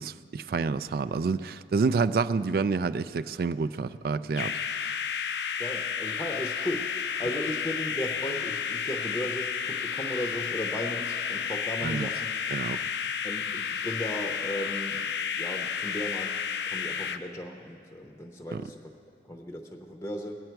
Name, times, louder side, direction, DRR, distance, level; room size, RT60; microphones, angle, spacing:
voice 1, 0.0-4.5 11.8-12.1 12.5-12.8 18.5-18.6, right 4 dB, 55° right, 15 dB, 0.3 m, -28 dB
sound 1, 4.3-17.2, left 7 dB, 75° left, 0.5 m, -32 dB
voice 2, 5.6-6.9 7.2-12.3 13.2-16.3 16.7-18.9 19.3-20.4, left 1 dB, 15° left, 3 dB, 0.6 m, -36 dB
20.5 x 8.8 x 4.6 m, 2.4 s
head